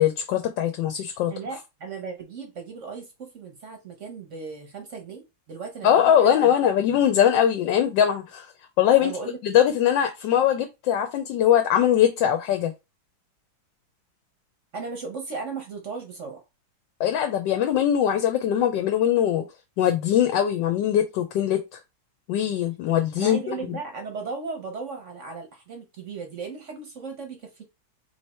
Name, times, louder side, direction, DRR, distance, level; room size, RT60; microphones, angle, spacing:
voice 1, 0.0-1.3 5.8-8.5 8.8-9.1 9.4-12.7 17.0-19.5 19.8-21.6 22.3-23.4, left 10 dB, 75° left, 1.2 m, -21 dB
voice 2, 1.3-7.0 9.0-9.4 14.7-16.4 23.2-27.6, right 4 dB, 50° right, 1.0 m, -36 dB
3.3 x 3.2 x 4.2 m
omnidirectional pair, 2.1 m